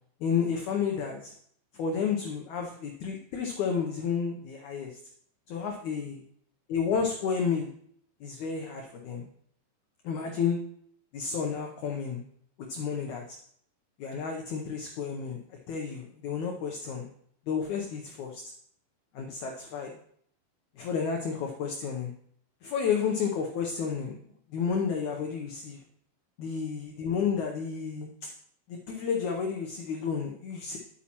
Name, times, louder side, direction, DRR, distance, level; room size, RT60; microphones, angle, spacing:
voice 1, 0.2-1.3 1.7-4.9 5.5-6.1 6.7-7.7 8.2-9.3 10.0-10.6 11.1-12.2 12.7-13.4 14.0-17.1 17.5-18.4 19.1-19.9 20.8-22.1 22.6-24.2 24.5-25.8 26.4-28.1 28.7-30.8, left 6 dB, 85° left, 2 dB, 1.6 m, -31 dB
10.5 x 8.4 x 3.0 m, 0.66 s
omnidirectional pair, 4.6 m